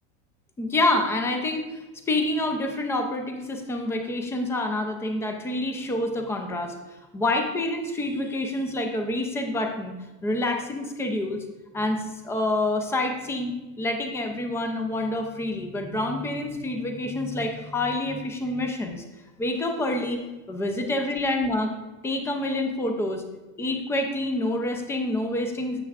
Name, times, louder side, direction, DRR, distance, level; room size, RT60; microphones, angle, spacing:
voice 1, 0.6-6.8 7.1-10.0 10.2-11.4 11.7-19.0 19.4-20.2 20.5-21.7 22.0-23.2 23.6-25.8, left 2 dB, 5° left, 4 dB, 0.4 m, -27 dB
9.7 x 7.6 x 2.4 m, 1.1 s
supercardioid pair, 150°, 38 cm